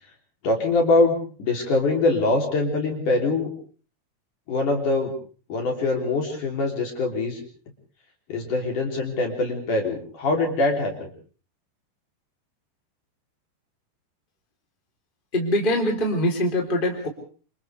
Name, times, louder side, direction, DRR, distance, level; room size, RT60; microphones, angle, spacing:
voice 1, 0.4-3.5 4.5-5.1 5.5-7.4 8.3-11.1, left 2 dB, 50° left, 1 dB, 4.6 m, -23 dB
voice 2, 15.3-17.1, left 1 dB, 10° left, 1 dB, 3.4 m, -23 dB
27.5 x 27.5 x 3.4 m, 0.41 s
omnidirectional pair, 5.0 m